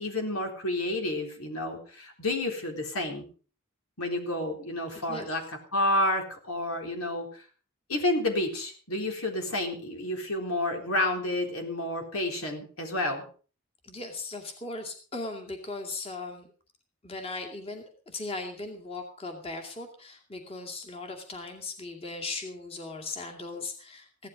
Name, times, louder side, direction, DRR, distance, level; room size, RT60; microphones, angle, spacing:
voice 1, 0.0-3.3 4.0-5.4 5.7-7.4 7.9-13.2, left 1 dB, 80° left, 3 dB, 3.9 m, -30 dB
voice 2, 13.8-16.5 17.0-24.3, left 3 dB, 25° left, 2 dB, 2.3 m, -38 dB
16.0 x 11.5 x 5.2 m, 0.39 s
head